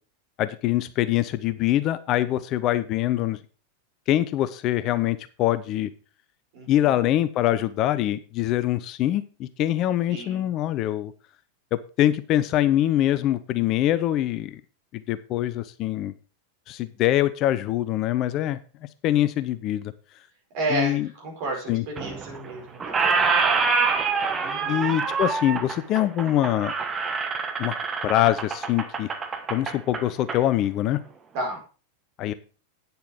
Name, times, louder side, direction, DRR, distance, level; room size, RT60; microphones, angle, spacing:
voice 1, 0.4-3.4 4.1-5.9 6.7-11.1 11.7-14.6 14.9-16.1 16.7-18.6 19.0-19.9 20.7-21.1 21.7-21.8 24.7-26.7 27.6-27.8 28.0-29.1 29.5-31.0 32.2-32.3, left 13 dB, 35° left, 15 dB, 0.6 m, -24 dB
voice 2, 6.5-7.1 10.1-10.5 20.5-23.0 24.4-24.9 31.3-31.6, right 2 dB, 45° right, 0 dB, 5.0 m, -32 dB
Squeak, 22.0-22.5 22.8-30.4, right 5 dB, 20° right, 1.3 m, -26 dB
9.5 x 6.9 x 5.1 m, 0.36 s
figure-of-eight pair, 90°, 0 cm